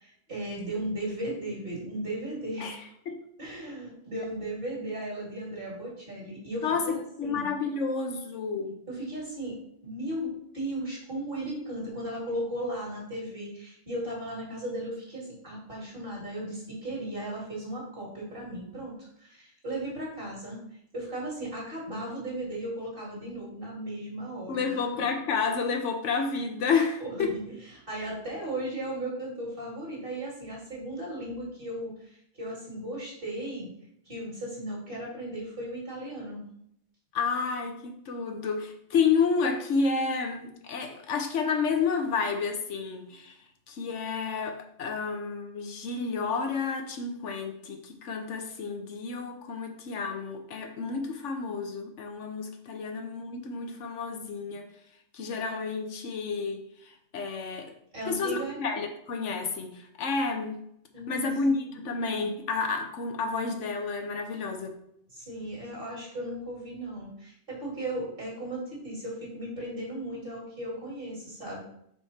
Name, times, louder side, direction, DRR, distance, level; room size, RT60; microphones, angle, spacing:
voice 1, 0.0-2.8 3.4-7.5 8.9-9.6 9.8-20.6 20.9-25.0 27.0-27.5 27.9-33.7 34.1-36.4 57.9-58.6 60.9-61.2 65.1-71.6, right 1 dB, 50° right, -4 dB, 2.6 m, -36 dB
voice 2, 6.6-8.8 24.5-27.3 37.1-43.3 43.7-54.7 55.1-57.7 58.0-60.6 61.1-64.8, left 5 dB, 80° left, 5 dB, 1.2 m, -30 dB
4.9 x 4.8 x 4.2 m, 0.72 s
omnidirectional pair, 1.2 m